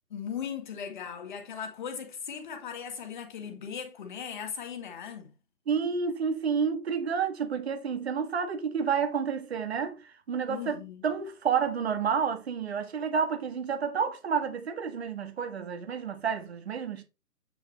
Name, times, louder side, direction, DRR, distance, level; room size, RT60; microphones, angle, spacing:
voice 1, 0.1-5.3 10.5-11.0, left 7 dB, 30° left, 1.9 m, -38 dB
voice 2, 5.7-17.0, right 6 dB, 40° right, 1.7 m, -30 dB
9.0 x 6.0 x 3.2 m
figure-of-eight pair, 145°, 47 cm